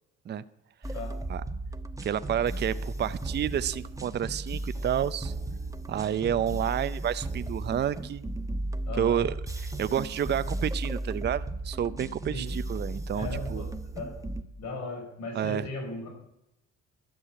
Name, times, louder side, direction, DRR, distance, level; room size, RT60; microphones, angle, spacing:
sound 1, 0.8-14.4, right 2 dB, 10° right, 1.2 m, -35 dB
voice 1, 2.0-5.3 5.9-8.2 8.9-9.4 9.6-13.6 15.3-15.7, right 9 dB, 35° right, 14 dB, 0.5 m, -30 dB
voice 2, 8.9-9.2 12.3-12.5 13.1-14.1 14.6-16.1, left 2 dB, 70° left, 1 dB, 4.9 m, -37 dB
12.5 x 6.3 x 8.7 m, 0.84 s
supercardioid pair, 80°, 29 cm